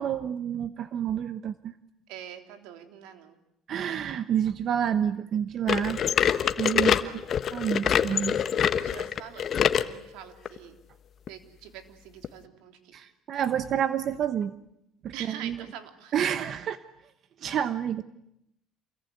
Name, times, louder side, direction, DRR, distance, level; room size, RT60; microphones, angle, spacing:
voice 1, 0.0-1.7 3.7-6.0 6.6-7.2 7.5-8.4 12.9-14.5 15.0-15.6 16.1-16.8 17.4-18.0, right 9 dB, 45° right, 12 dB, 1.0 m, -29 dB
voice 2, 2.1-3.4 6.8-7.4 8.6-10.8 11.3-12.9 15.1-16.1, right 9 dB, 85° right, 7 dB, 3.5 m, -45 dB
sound 1, 5.7-9.9 10.5-10.6 11.3-11.4 12.2-12.3, left 8 dB, 40° left, 1.2 m, -25 dB
28.0 x 22.0 x 9.5 m, 0.82 s
cardioid pair, 130°, 0 cm